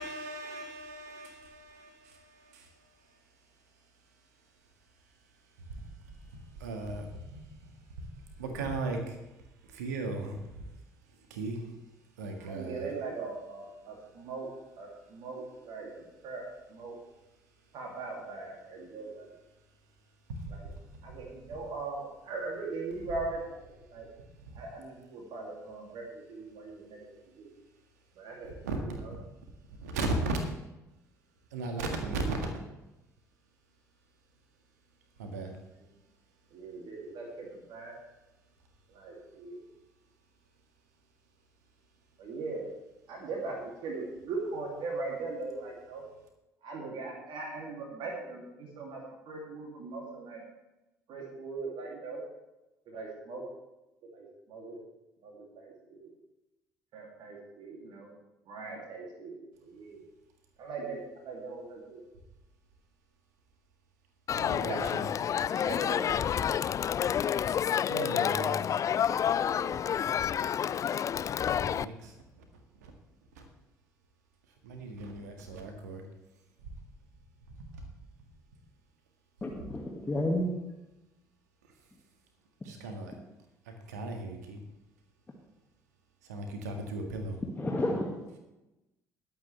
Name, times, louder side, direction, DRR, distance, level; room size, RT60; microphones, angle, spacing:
voice 1, 0.0-2.7 5.7-5.8 6.3-7.7 8.4-9.2 9.7-10.7 11.3-11.6 12.2-12.9 20.4-20.6 28.6-28.8 29.8-30.4 31.5-32.5 35.2-35.5 64.3-65.1 67.9-68.6 71.4-72.1 72.8-72.9 74.6-76.0 77.7-77.8 82.6-83.1 83.7-84.6 86.3-87.4, right 2 dB, 75° right, 4 dB, 1.8 m, -37 dB
voice 2, 12.4-14.5 14.8-16.4 16.7-17.0 17.7-19.3 20.5-20.7 21.0-24.1 24.5-27.5 28.2-29.1 31.9-32.0 36.5-38.0 38.9-39.6 42.2-42.7 43.1-46.0 46.6-50.4 51.1-52.2 52.9-53.4 54.0-54.8 55.2-56.1 56.9-58.1 58.5-60.0 60.6-62.0 64.6-66.2 69.3-69.7, right 3 dB, 55° right, -1 dB, 2.9 m, -40 dB
Crowd, 64.3-71.8, left 9 dB, 35° left, 0.4 m, -29 dB
voice 3, 79.4-80.5 87.6-88.1, left 1 dB, 20° left, -2 dB, 2.1 m, -30 dB
20.0 x 8.6 x 3.4 m, 0.97 s
figure-of-eight pair, 55°, 9 cm